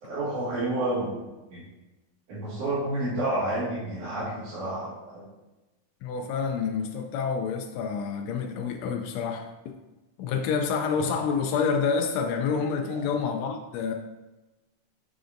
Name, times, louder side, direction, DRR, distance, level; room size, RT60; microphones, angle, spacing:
voice 1, 0.0-1.2 1.5-1.6 2.3-5.2 12.9-13.2, right 1 dB, 80° right, -9 dB, 3.2 m, -30 dB
voice 2, 6.0-9.7 10.2-13.9, left 6 dB, 80° left, 4 dB, 1.5 m, -28 dB
6.8 x 6.4 x 2.5 m, 1.1 s
omnidirectional pair, 3.5 m